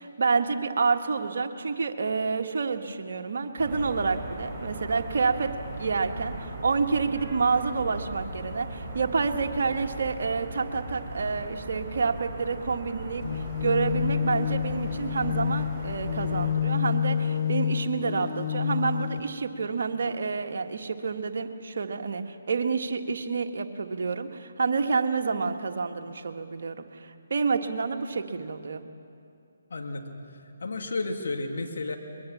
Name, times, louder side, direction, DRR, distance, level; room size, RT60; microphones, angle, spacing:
voice 1, 0.0-28.8, right 4 dB, 60° right, 5 dB, 1.6 m, -28 dB
sound 1, 3.6-16.5, right 1 dB, 10° right, 5.5 m, -38 dB
sound 2, 13.2-19.2, left 8 dB, 35° left, 1.0 m, -28 dB
voice 2, 29.7-30.1 30.6-32.0, left 3 dB, 60° left, 3 dB, 2.3 m, -32 dB
23.0 x 21.5 x 7.3 m, 2.5 s
figure-of-eight pair, 145°, 0 cm